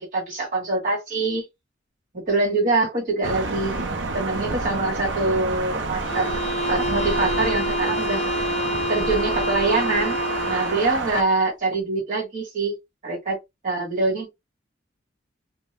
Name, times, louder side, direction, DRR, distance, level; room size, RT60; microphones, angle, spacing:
voice 1, 0.0-1.4 2.3-3.8 4.1-6.3 6.7-8.2 8.9-10.2 10.5-12.8 13.0-13.4 13.6-14.3, right 3 dB, 45° right, 1.6 m, -24 dB
Thunder, 3.2-11.2, right 3 dB, 75° right, 0.6 m, -28 dB
sound 1, 6.0-10.9, left 1 dB, 35° left, 0.5 m, -27 dB
2.8 x 2.2 x 3.3 m
head